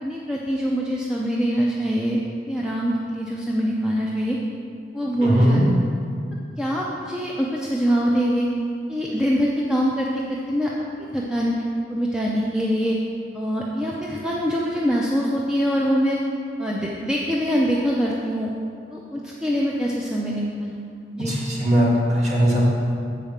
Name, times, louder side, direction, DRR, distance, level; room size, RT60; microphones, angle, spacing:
voice 1, 0.0-2.2 2.5-4.4 4.9-5.9 6.6-8.5 8.9-10.7 11.0-11.5 11.9-13.0 13.3-16.2 16.6-18.5 18.9-20.8 21.1-21.3, equal, 5° right, -4 dB, 0.5 m, -24 dB
voice 2, 5.2-5.6 21.3-22.6, equal, 35° right, -5 dB, 1.8 m, -19 dB
7.3 x 5.1 x 7.2 m, 2.4 s
head